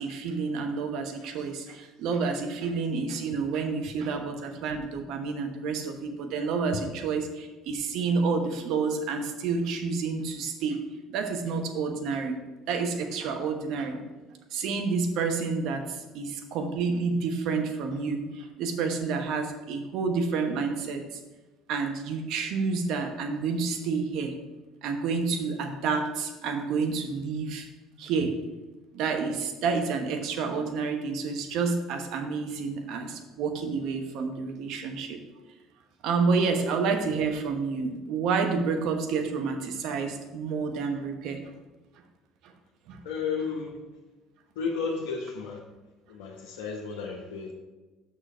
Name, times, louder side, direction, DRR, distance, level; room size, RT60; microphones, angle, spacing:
voice 1, 0.0-10.8 11.1-12.4 12.7-14.0 14.5-21.2 21.7-24.3 24.8-27.7 28.0-28.3 28.9-35.2 36.0-41.4 42.9-43.0, right 4 dB, 65° right, 5 dB, 1.1 m, -29 dB
voice 2, 43.0-43.8 44.5-45.6 46.1-47.5, left 5 dB, 80° left, -4 dB, 1.1 m, -33 dB
6.6 x 6.1 x 4.5 m, 1.2 s
hypercardioid pair, 70°, 0 cm